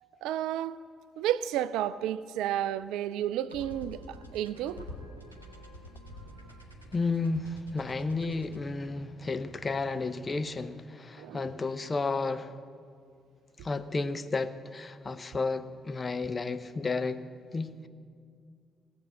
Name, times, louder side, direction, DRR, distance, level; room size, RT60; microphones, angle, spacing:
voice 1, 0.2-0.8 1.2-4.8 11.2-11.5, right 11 dB, 65° right, 16 dB, 0.3 m, -31 dB
sound 1, 3.5-10.8, left 1 dB, 90° right, 0.9 m, -48 dB
voice 2, 6.9-12.5 13.6-17.2 17.5-17.9, left 3 dB, 30° left, 11 dB, 0.7 m, -32 dB
17.0 x 7.6 x 8.7 m, 2.2 s
figure-of-eight pair, 45°, 0 cm